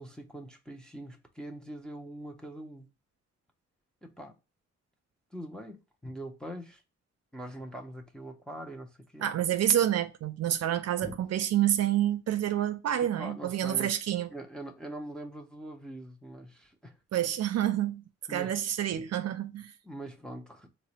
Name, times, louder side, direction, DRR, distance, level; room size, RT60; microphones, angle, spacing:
voice 1, 0.0-2.9 4.0-4.4 5.3-6.8 7.3-9.3 11.0-11.2 13.2-13.9 14.3-17.0 18.3-18.6 18.9-19.0 19.8-20.7, right 1 dB, 5° left, 0.4 m, -43 dB
voice 2, 9.2-14.3 17.1-18.0 18.3-19.7, right 11 dB, 60° right, 0.4 m, -28 dB
3.9 x 2.0 x 2.8 m
wide cardioid pair, 130°, 29 cm